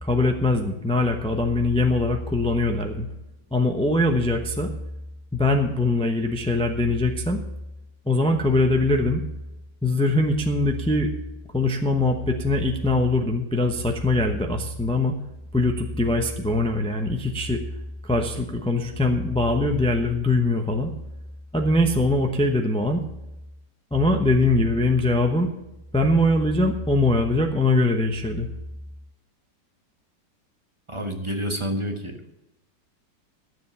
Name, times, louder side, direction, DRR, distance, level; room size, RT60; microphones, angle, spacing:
voice 1, 0.0-3.1 3.5-4.7 5.3-7.4 8.1-9.2 9.8-11.1 11.5-15.1 15.5-17.6 18.0-20.9 21.5-23.0 23.9-25.5 25.9-28.5, left 2 dB, 5° left, 3 dB, 0.4 m, -22 dB
voice 2, 30.9-32.3, equal, 20° right, 4 dB, 1.0 m, -29 dB
12.5 x 7.7 x 7.0 m, 0.93 s
omnidirectional pair, 1.9 m